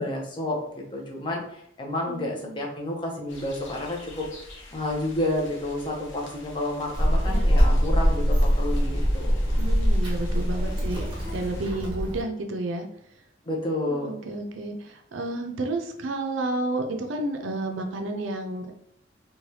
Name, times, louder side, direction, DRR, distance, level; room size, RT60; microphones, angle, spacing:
voice 1, 0.0-4.2 4.7-9.4 13.5-14.1, left 1 dB, 25° left, -1 dB, 0.6 m, -30 dB
voice 2, 2.1-2.6 9.6-11.0 11.3-12.9 13.9-18.8, right 2 dB, 85° right, 4 dB, 0.5 m, -31 dB
sound 1, 3.3-11.7, left 1 dB, 80° left, 0.7 m, -46 dB
Child speech kid speaking, 6.9-12.2, equal, 25° right, 0.7 m, -23 dB
3.2 x 2.2 x 2.7 m, 0.70 s
head